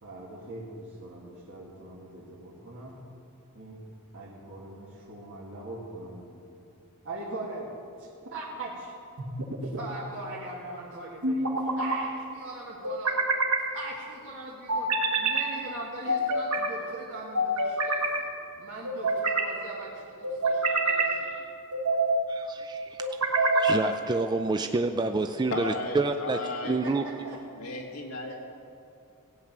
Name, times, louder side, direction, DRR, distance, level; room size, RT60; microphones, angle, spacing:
voice 1, 0.0-3.0 3.6-3.8 4.1-6.4 7.0-7.7 8.0-8.9 9.6-13.2 13.6-14.9 15.2-18.3 18.6-21.5 26.6-27.4 28.3-28.4, right 2 dB, 55° right, -6 dB, 1.9 m, -41 dB
sound 1, 9.2-9.8 11.2-12.0 12.8-13.6 14.7-15.5 16.1-16.7 17.3-18.2 18.8-19.5 20.2-21.2 21.7-22.2 23.0-23.8, right 2 dB, 85° right, 1.5 m, -26 dB
voice 2, 22.3-26.4 26.7-27.0, right 3 dB, 20° right, 7 dB, 0.3 m, -28 dB
voice 3, 25.5-26.8 27.6-28.3, left 2 dB, 70° left, 1 dB, 1.7 m, -34 dB
16.0 x 8.8 x 6.0 m, 2.5 s
head